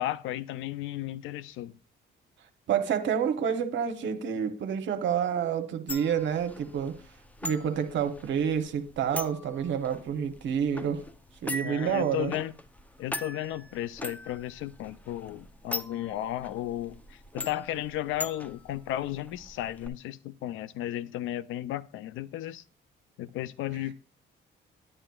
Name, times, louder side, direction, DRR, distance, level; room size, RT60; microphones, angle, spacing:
voice 1, 0.0-1.7 11.6-12.5 13.0-22.6 23.2-24.0, left 13 dB, 85° left, 0.4 m, -34 dB
voice 2, 2.7-6.9 7.4-11.0 11.4-12.3, right 8 dB, 70° right, 0.8 m, -28 dB
sound 1, 5.9-19.9, left 2 dB, 5° left, 0.5 m, -42 dB
9.7 x 9.0 x 2.3 m
cardioid pair, 90°, 20 cm